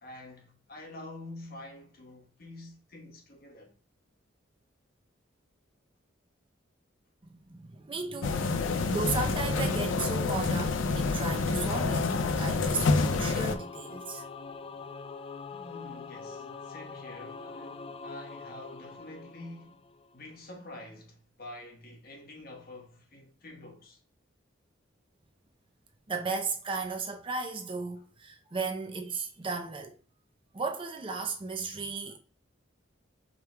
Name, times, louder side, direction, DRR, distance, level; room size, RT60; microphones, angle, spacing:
voice 1, 0.0-3.7 15.5-24.0, left 1 dB, 50° left, 1.2 m, -47 dB
voice 2, 7.2-14.3 26.1-30.0 30.5-32.2, right 4 dB, 25° right, 0.6 m, -35 dB
sound 1, 8.2-13.6, left 3 dB, 85° left, 0.5 m, -28 dB
Singing / Musical instrument, 12.7-20.2, left 4 dB, 30° left, 0.3 m, -44 dB
5.0 x 4.5 x 2.2 m
head